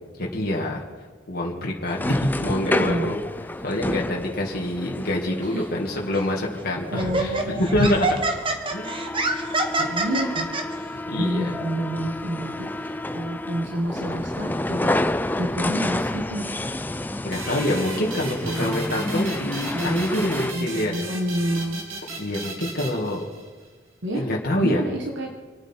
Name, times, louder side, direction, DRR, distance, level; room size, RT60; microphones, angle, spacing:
voice 1, 0.2-0.8 1.3-3.2 3.6-8.1 8.7-8.9 11.1-11.5 17.2-20.9 22.2-23.2 24.1-24.8, left 1 dB, 45° left, -2 dB, 2.1 m, -26 dB
sound 1, 1.9-20.5, left 1 dB, 10° left, 0.4 m, -30 dB
voice 2, 2.7-3.1 5.4-5.6 6.9-7.9 9.8-10.5 11.1-16.5 17.9-18.0 18.4-18.7 19.7-21.8 24.0-24.2 24.6-25.3, equal, 60° right, 1 dB, 1.5 m, -29 dB
Laughter, 6.1-6.3 7.0-10.6, right 3 dB, 25° right, 1.3 m, -25 dB
sound 2, 17.3-23.7, right 3 dB, 85° right, 2.7 m, -36 dB
26.5 x 9.2 x 4.6 m, 1.5 s
head